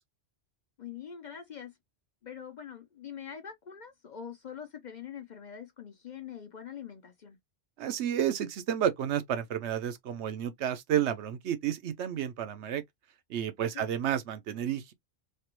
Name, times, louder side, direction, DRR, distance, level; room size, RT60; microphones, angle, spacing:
voice 1, 0.8-1.7 2.2-7.4 13.7-13.9, left 8 dB, 50° left, 0.6 m, -44 dB
voice 2, 7.8-12.8 13.3-14.9, right 10 dB, 75° right, 0.9 m, -31 dB
3.3 x 2.4 x 2.9 m
omnidirectional pair, 1.2 m